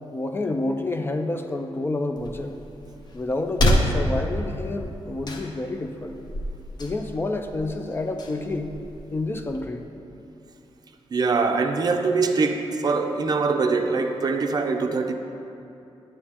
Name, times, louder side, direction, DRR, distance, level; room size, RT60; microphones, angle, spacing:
voice 1, 0.1-2.6 3.1-6.2 6.8-8.7 9.1-9.8, left 2 dB, 20° left, 0.3 m, -29 dB
sound 1, 2.2-9.6, equal, 40° left, 0.7 m, -29 dB
voice 2, 11.1-15.1, right 4 dB, 40° right, 0.5 m, -23 dB
9.8 x 8.7 x 2.9 m
wide cardioid pair, 160°, 11 cm